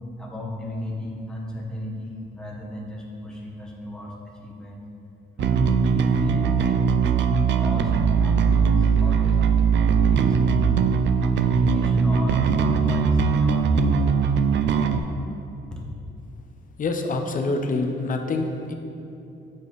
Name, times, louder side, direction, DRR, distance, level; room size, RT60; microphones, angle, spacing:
voice 1, 0.2-4.9 5.4-10.8 11.2-13.9 15.7-15.8, left 1 dB, 5° left, -3 dB, 1.4 m, -34 dB
Bass guitar, 5.4-15.0, right 6 dB, 65° right, 0.5 m, -20 dB
voice 2, 16.8-18.7, left 3 dB, 45° left, 4 dB, 0.8 m, -26 dB
8.7 x 5.0 x 4.1 m, 2.8 s
cardioid pair, 90°, 20 cm